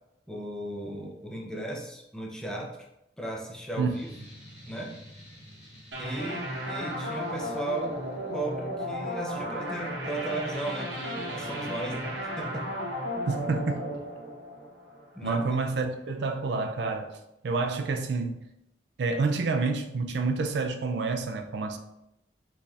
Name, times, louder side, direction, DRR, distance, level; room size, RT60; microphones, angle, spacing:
voice 1, 0.3-2.9 3.2-4.1 4.7-5.0 6.0-8.0 8.3-12.7 15.1-15.4, right 1 dB, 5° left, -2 dB, 0.6 m, -36 dB
sound 1, 3.9-8.3, equal, 70° left, 1.3 m, -51 dB
sound 2, 5.9-15.3, equal, 85° right, 1.0 m, -34 dB
voice 2, 13.3-13.8 15.2-17.2 17.4-18.4 19.0-21.8, right 4 dB, 65° right, 5 dB, 0.4 m, -28 dB
4.0 x 3.4 x 2.4 m, 0.85 s
head